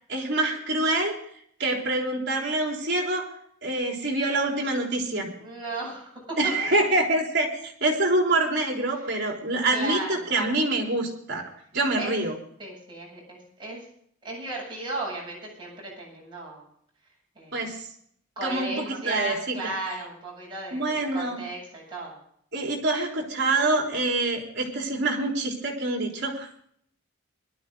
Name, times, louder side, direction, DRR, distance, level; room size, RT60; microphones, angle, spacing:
voice 1, 0.1-1.1 1.6-3.3 3.6-5.3 6.4-11.4 11.7-12.4 17.5-17.9 18.4-19.7 20.7-21.4 22.5-26.5, right 2 dB, 50° right, 0 dB, 3.9 m, -26 dB
voice 2, 5.4-6.4 9.0-9.2 9.7-10.4 12.0-12.2 12.6-13.8 14.2-16.6 17.4-17.6 18.4-22.2, right 2 dB, 20° right, -4 dB, 7.6 m, -35 dB
20.5 x 12.5 x 3.9 m, 0.65 s
head